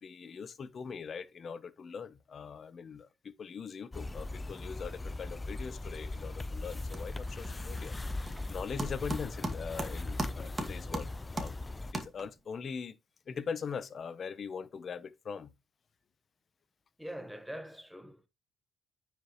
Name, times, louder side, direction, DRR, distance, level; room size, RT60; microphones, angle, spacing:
voice 1, 0.0-8.0 8.2-11.6 11.9-13.0 13.3-15.5, left 6 dB, 50° left, 0.8 m, -41 dB
sound 1, 3.9-11.9, left 2 dB, 20° left, 0.6 m, -39 dB
sound 2, 6.1-6.4 6.7-12.6, right 2 dB, 25° right, 2.1 m, -40 dB
voice 2, 17.0-18.3, equal, ahead, 1.2 m, -43 dB
9.3 x 5.1 x 3.0 m
cardioid pair, 90°, 0 cm